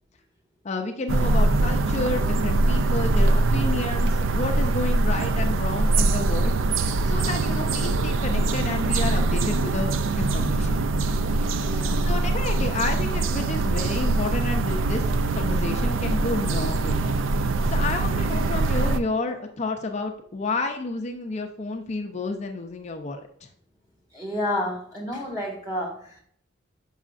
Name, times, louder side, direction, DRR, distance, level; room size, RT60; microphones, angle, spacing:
voice 1, 0.6-6.5 7.1-10.8 12.1-15.0 15.3-17.1 17.7-23.3, left 3 dB, 35° left, 3 dB, 0.5 m, -30 dB
sound 1, 1.1-19.0, right 2 dB, 80° right, 0.4 m, -23 dB
voice 2, 11.6-12.0 17.7-17.8 24.1-26.2, left 1 dB, 20° right, -2 dB, 2.0 m, -30 dB
7.2 x 5.5 x 2.5 m, 0.64 s
head